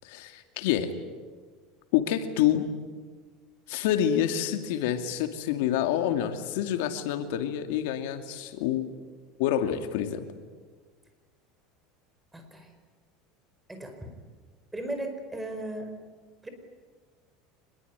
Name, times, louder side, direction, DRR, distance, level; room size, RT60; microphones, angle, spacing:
voice 1, 0.0-0.9 1.9-2.7 3.7-8.9 9.4-10.2, left 10 dB, 80° left, 7 dB, 2.4 m, -27 dB
voice 2, 12.3-12.7 13.7-14.1 14.7-15.9 16.4-16.5, right 1 dB, 5° right, 6 dB, 4.8 m, -36 dB
26.0 x 21.5 x 9.6 m, 1.5 s
supercardioid pair, 135°, 0 cm